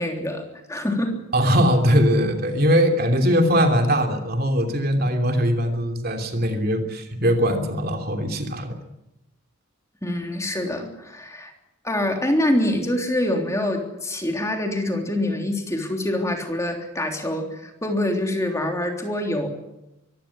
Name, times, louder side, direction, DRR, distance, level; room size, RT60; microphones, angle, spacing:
voice 1, 0.0-1.2 10.0-11.5 11.8-19.5, left 1 dB, 15° left, 2 dB, 3.4 m, -25 dB
voice 2, 1.3-8.8, equal, 45° right, 4 dB, 3.0 m, -21 dB
24.0 x 15.0 x 10.0 m, 0.92 s
head